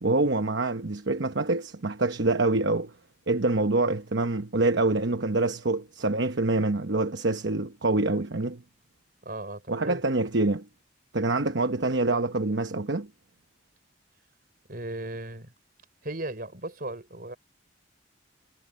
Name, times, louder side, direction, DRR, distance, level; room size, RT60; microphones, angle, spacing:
voice 1, 0.0-2.9 3.3-8.6 9.7-10.7 11.1-13.1, right 2 dB, 60° right, 1.0 m, -26 dB
voice 2, 9.2-10.0 14.7-15.5 16.0-17.4, right 2 dB, 45° right, 4.7 m, -36 dB
head